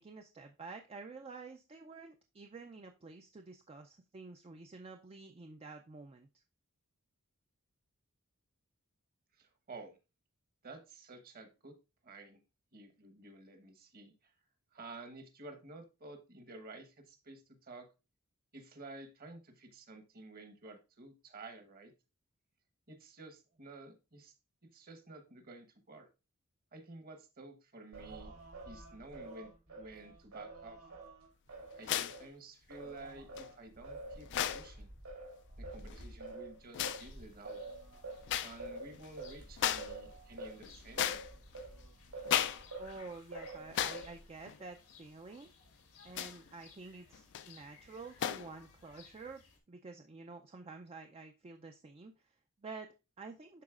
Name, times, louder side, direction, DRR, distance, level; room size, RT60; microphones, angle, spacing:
voice 1, 0.0-6.3 42.8-45.5 46.0-53.6, right 3 dB, 25° right, 5 dB, 0.4 m, -50 dB
voice 2, 9.3-10.0 10.6-11.8 12.0-12.4 12.7-14.3 14.7-17.9 18.5-21.9 22.9-24.3 24.6-26.1 26.7-28.3 28.6-30.8 31.7-34.3 34.5-34.9 35.6-37.6 38.4-41.2, right 2 dB, 40° right, 7 dB, 1.1 m, -52 dB
Singing, 27.9-32.3 32.7-43.0 43.3-44.3, right 2 dB, 75° right, 2.5 m, -48 dB
sound 1, 31.8-32.2 33.4-33.5 34.2-34.7 35.8-36.1 36.7-37.1 38.3-38.6 38.9-39.1 39.6-40.0 40.3-41.6 42.3-42.7 43.0-43.1 43.7-44.1 44.5-44.6 46.1-46.5 47.1-47.5 48.2-48.5, left 11 dB, 55° left, 0.3 m, -35 dB
sound 2, 36.8-49.6, left 5 dB, 90° left, 1.5 m, -61 dB
11.5 x 3.9 x 2.4 m, 0.29 s
head